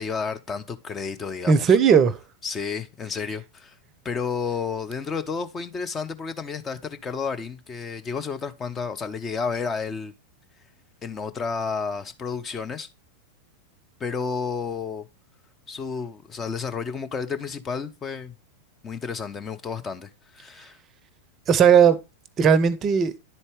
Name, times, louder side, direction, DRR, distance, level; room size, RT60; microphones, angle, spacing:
voice 1, 0.0-1.8 2.4-3.7 4.0-10.1 11.0-12.9 14.0-15.1 15.7-18.3 18.8-20.8, left 5 dB, 20° left, 0.7 m, -31 dB
voice 2, 1.5-2.2 21.5-22.0 22.4-23.1, right 7 dB, 30° right, 0.6 m, -17 dB
10.5 x 4.2 x 3.4 m
figure-of-eight pair, 90°, 0 cm